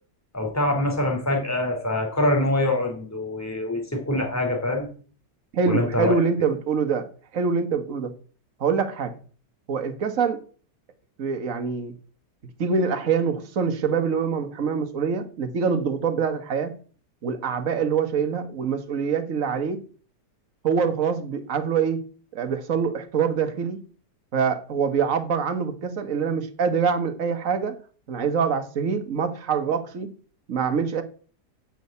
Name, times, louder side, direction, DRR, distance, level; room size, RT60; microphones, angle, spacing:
voice 1, 0.3-4.9 5.7-6.1, left 1 dB, 10° left, 3.4 m, -24 dB
voice 2, 5.5-7.1 7.3-8.1 8.6-9.1 9.7-10.4 11.2-11.9 12.6-16.7 17.2-19.8 20.6-22.0 22.3-23.8 24.3-27.8 28.1-30.1 30.5-31.0, right 6 dB, 50° right, 1.8 m, -25 dB
11.5 x 6.3 x 8.5 m
omnidirectional pair, 1.8 m